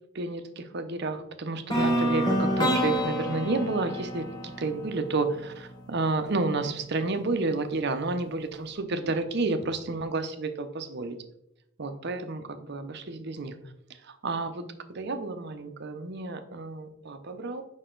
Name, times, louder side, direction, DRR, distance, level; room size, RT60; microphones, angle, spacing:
voice 1, 0.1-11.2 11.8-13.5 14.0-14.6 14.9-17.6, right 3 dB, 55° right, 8 dB, 0.7 m, -31 dB
sound 1, 1.7-5.7, equal, 20° left, 1.5 m, -28 dB
6.4 x 5.4 x 3.9 m, 0.78 s
head